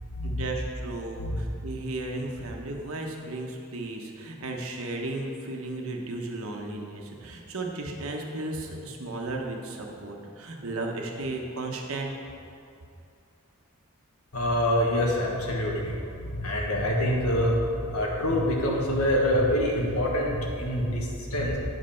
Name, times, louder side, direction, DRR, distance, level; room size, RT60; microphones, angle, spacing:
voice 1, 0.2-12.2, right 2 dB, 65° right, 1 dB, 1.1 m, -35 dB
voice 2, 14.3-16.0 16.2-21.6, left 1 dB, 80° left, -1 dB, 1.6 m, -26 dB
9.3 x 5.4 x 5.8 m, 2.5 s
head